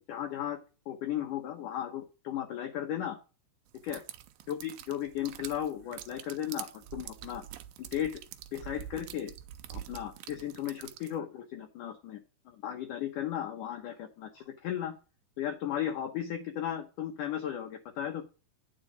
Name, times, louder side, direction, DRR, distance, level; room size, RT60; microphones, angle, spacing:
voice 1, 0.1-0.6 0.9-3.2 3.8-4.0 4.5-7.4 7.8-8.2 8.5-9.3 9.7-12.2 12.5-14.9 15.4-18.2, left 10 dB, 70° left, 3 dB, 2.2 m, -35 dB
sound 1, 3.8-11.2, right 12 dB, 75° right, 2.2 m, -46 dB
9.6 x 4.8 x 5.1 m, 0.32 s
omnidirectional pair, 4.6 m